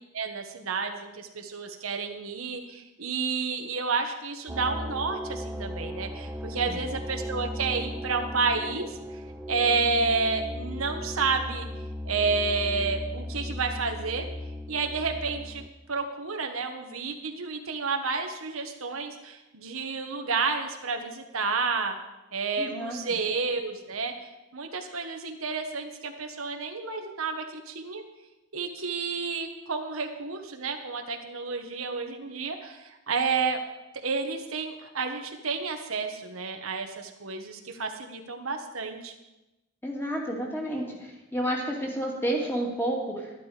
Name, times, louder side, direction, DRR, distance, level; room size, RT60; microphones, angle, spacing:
voice 1, 0.1-8.9 9.5-11.7 12.0-14.2 14.7-15.6 15.9-22.0 22.3-24.1 24.5-28.0 28.5-33.6 34.0-39.1, right 4 dB, 85° right, 4 dB, 1.4 m, -30 dB
sound 1, 4.5-15.7, left 1 dB, 5° right, 0.6 m, -36 dB
voice 2, 22.6-23.0 39.8-43.4, right 1 dB, 10° left, -2 dB, 2.3 m, -30 dB
12.0 x 11.5 x 5.0 m, 1.0 s
head